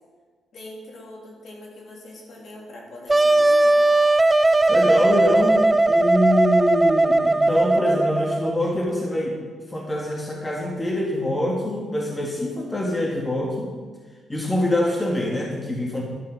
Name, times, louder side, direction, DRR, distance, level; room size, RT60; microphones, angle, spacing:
voice 1, 0.5-3.8, left 1 dB, 55° left, -2 dB, 3.2 m, -42 dB
Wind instrument woodwind instrument, 3.1-8.6, right 2 dB, 15° right, 0.3 m, -18 dB
voice 2, 4.7-9.4 9.7-13.7 14.3-16.0, left 1 dB, 15° left, -1 dB, 1.8 m, -24 dB
12.0 x 7.1 x 6.2 m, 1.5 s
cardioid pair, 95°, 0 cm